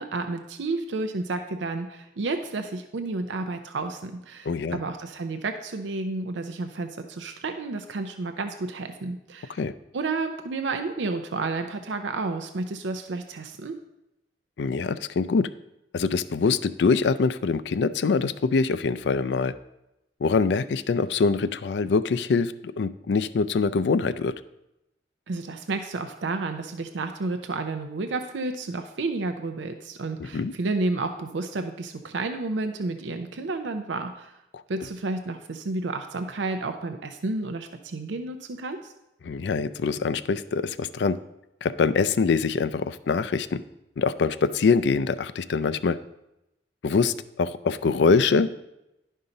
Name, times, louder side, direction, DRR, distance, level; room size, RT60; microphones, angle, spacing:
voice 1, 0.0-9.6 9.9-13.7 25.3-34.3 34.7-38.9, right 3 dB, 90° right, 7 dB, 0.5 m, -31 dB
voice 2, 4.5-4.8 9.5-9.7 14.6-15.5 15.9-19.5 20.2-24.3 30.2-30.5 34.5-34.6 39.2-41.2 41.6-43.6 44.0-46.0 46.8-48.5, left 4 dB, 70° left, 15 dB, 0.4 m, -24 dB
11.0 x 5.5 x 3.9 m, 0.88 s
head